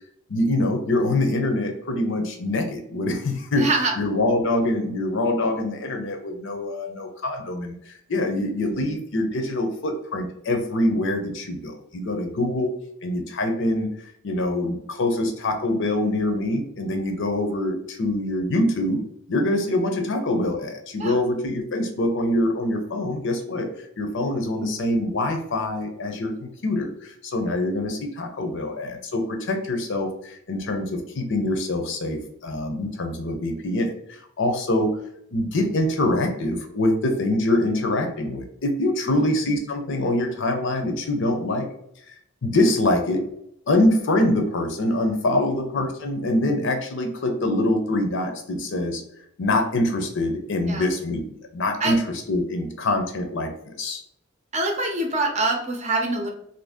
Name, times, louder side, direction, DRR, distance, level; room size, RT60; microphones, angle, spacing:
voice 1, 0.3-3.7 4.0-12.7 13.0-13.9 14.2-19.0 19.3-23.7 24.0-35.0 35.3-41.7 42.4-43.2 43.7-49.0 49.4-51.2 51.5-52.0 52.3-54.0, left 1 dB, 60° left, 4 dB, 0.6 m, -24 dB
voice 2, 3.6-3.9 8.4-8.5 21.0-21.2 39.1-39.3 45.5-45.6 50.7-50.9 51.8-52.0 54.5-56.3, right 2 dB, 35° right, 2 dB, 0.6 m, -25 dB
2.7 x 2.7 x 3.5 m, 0.74 s
head